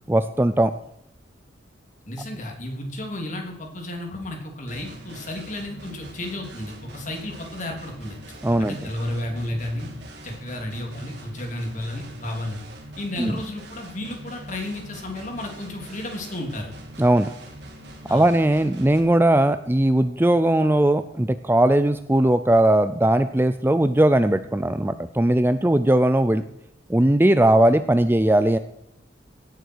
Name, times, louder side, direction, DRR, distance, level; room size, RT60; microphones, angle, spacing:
voice 1, 0.1-0.7 8.4-8.8 13.2-13.4 17.0-17.3 18.1-26.4 26.9-28.6, right 1 dB, 10° right, 11 dB, 0.4 m, -19 dB
voice 2, 2.1-8.2 8.6-9.9 10.2-12.6 13.0-16.7 18.1-18.3, left 1 dB, 40° left, 2 dB, 3.1 m, -32 dB
sound 1, 4.7-19.0, right 1 dB, 60° right, 3.3 m, -43 dB
17.0 x 10.5 x 4.7 m, 0.80 s
head